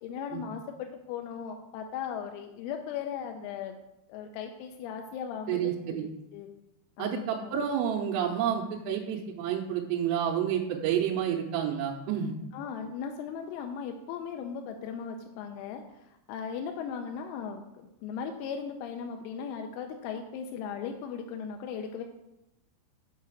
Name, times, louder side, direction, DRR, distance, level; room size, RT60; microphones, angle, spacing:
voice 1, 0.0-3.8 4.1-5.6 5.9-6.0 6.3-6.5 7.0-7.5 12.5-22.0, left 7 dB, 90° left, 4 dB, 3.4 m, -37 dB
voice 2, 5.5-6.1 7.0-12.4, right 9 dB, 85° right, -1 dB, 3.3 m, -29 dB
7.6 x 5.6 x 6.2 m, 0.90 s
omnidirectional pair, 5.9 m